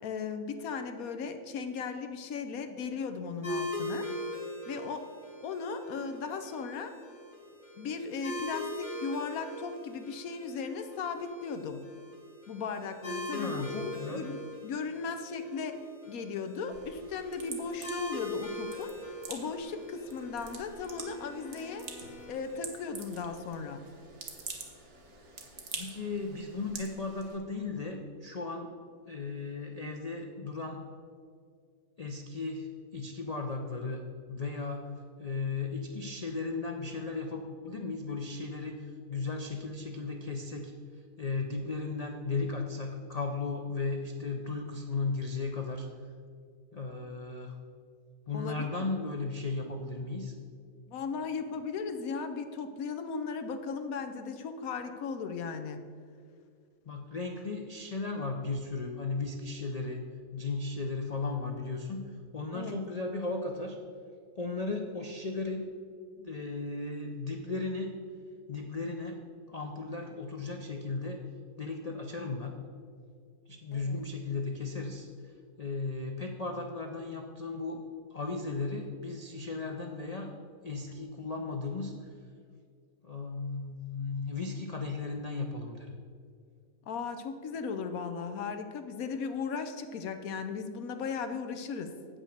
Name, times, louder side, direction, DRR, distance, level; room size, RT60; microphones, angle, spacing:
voice 1, 0.0-4.1 4.7-5.1 5.4-7.0 7.8-11.8 12.5-14.4 14.6-18.9 19.3-21.9 22.3-23.9 48.3-48.7 50.9-55.8 62.5-62.8 73.7-74.0 86.9-91.9, left 5 dB, 70° left, 8 dB, 1.1 m, -37 dB
sound 1, 3.4-22.6, left 1 dB, 35° left, 2.6 m, -42 dB
voice 2, 13.3-14.2 25.7-28.7 29.1-30.8 32.0-34.0 34.3-34.9 35.2-40.7 41.2-45.9 46.7-47.6 48.3-50.3 56.9-60.0 60.3-63.8 64.4-65.7 66.2-67.9 68.5-69.2 69.5-71.2 71.6-72.5 73.5-75.3 75.6-77.8 78.1-80.3 80.6-82.1 83.0-85.9, left 3 dB, 85° left, 2 dB, 0.3 m, -36 dB
sound 2, 16.7-27.4, right 4 dB, 50° right, 1.4 m, -46 dB
Bowed string instrument, 19.6-22.7, left 1 dB, 55° left, 0.8 m, -55 dB
8.0 x 6.2 x 6.4 m, 2.2 s
omnidirectional pair, 1.7 m